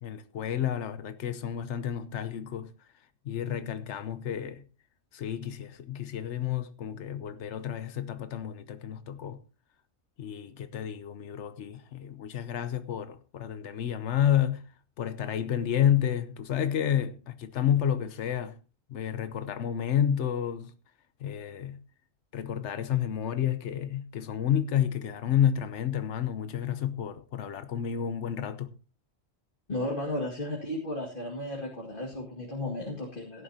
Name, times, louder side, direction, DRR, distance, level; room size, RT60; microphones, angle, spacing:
voice 1, 0.0-2.7 3.2-4.6 5.1-9.4 10.2-14.7 15.0-18.5 18.9-20.7 21.2-21.8 22.3-28.7, left 10 dB, 85° left, 1.1 m, -30 dB
voice 2, 29.7-33.4, left 1 dB, 50° left, 2.3 m, -34 dB
17.0 x 11.0 x 2.8 m
omnidirectional pair, 1.2 m